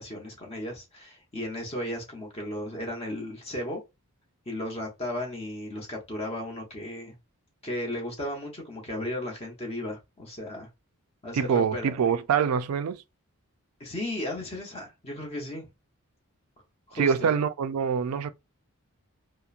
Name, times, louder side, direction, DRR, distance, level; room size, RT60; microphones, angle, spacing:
voice 1, 0.0-3.8 4.5-7.1 7.6-10.7 11.2-11.9 13.8-15.7 16.9-17.3, left 1 dB, 25° left, 0.7 m, -35 dB
voice 2, 11.3-13.0 16.9-18.3, right 7 dB, 85° right, 0.3 m, -25 dB
2.9 x 2.0 x 2.3 m
head